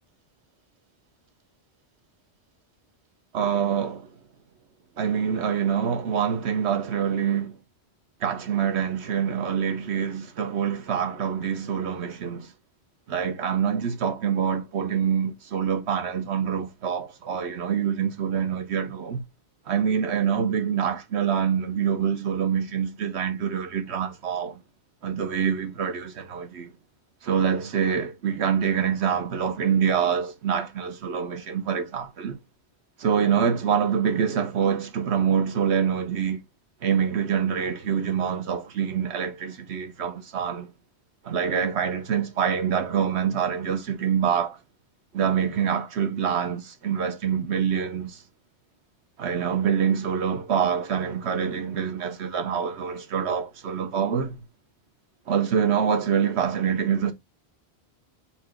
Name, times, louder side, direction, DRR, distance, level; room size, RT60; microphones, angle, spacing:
voice 1, 3.3-4.1 5.0-7.6 8.2-12.5 13.1-19.2 19.7-24.6 25.0-26.7 27.2-32.4 33.0-36.4 36.8-40.7 41.2-44.6 45.1-48.2 49.2-54.4 55.3-57.1, right 7 dB, 85° right, 1.2 m, -25 dB
4.5 x 2.5 x 4.3 m
omnidirectional pair, 1.1 m